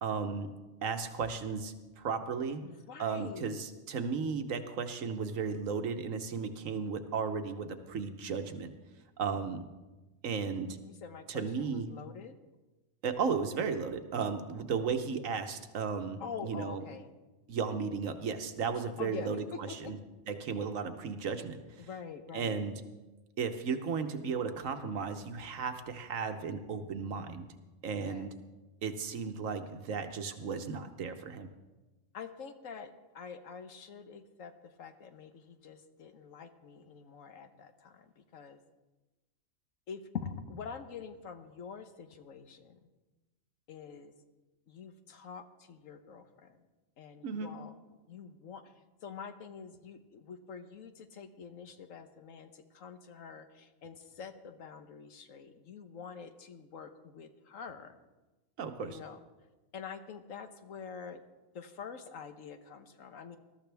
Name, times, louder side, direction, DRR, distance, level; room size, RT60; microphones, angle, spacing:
voice 1, 0.0-0.5 0.8-2.6 3.0-8.7 9.2-9.6 10.2-10.8 11.3-11.9 13.0-16.8 17.5-20.0 20.3-21.9 22.3-22.7 23.4-27.5 27.8-28.3 28.8-31.5 47.2-47.5 58.6-59.0, right 5 dB, 85° right, 8 dB, 1.4 m, -35 dB
voice 2, 2.6-3.7 10.8-12.3 16.2-17.1 19.0-19.3 19.7-19.9 21.8-22.6 27.8-28.3 32.1-34.5 34.8-38.6 39.9-42.8 43.7-44.1 44.7-46.6 47.0-48.7 49.0-58.0 58.8-59.2 59.7-61.2 61.5-63.4, left 6 dB, 85° left, 8 dB, 1.4 m, -46 dB
20.5 x 13.0 x 3.4 m, 1.1 s
omnidirectional pair, 1.3 m